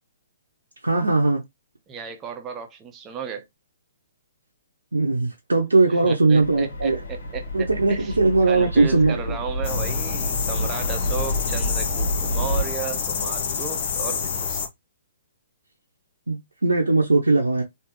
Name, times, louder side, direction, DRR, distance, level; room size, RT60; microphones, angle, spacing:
voice 1, 0.8-1.4 4.9-7.0 7.5-9.1 16.3-17.6, right 3 dB, 80° right, 0.8 m, -19 dB
voice 2, 1.9-3.5 5.9-8.2 8.5-14.6, right 7 dB, 20° right, 0.8 m, -34 dB
sound 1, 6.4-12.6, left 1 dB, 70° left, 1.5 m, -29 dB
sound 2, 9.6-14.7, left 6 dB, 50° left, 0.9 m, -28 dB
3.5 x 2.8 x 3.0 m
figure-of-eight pair, 125°, 0 cm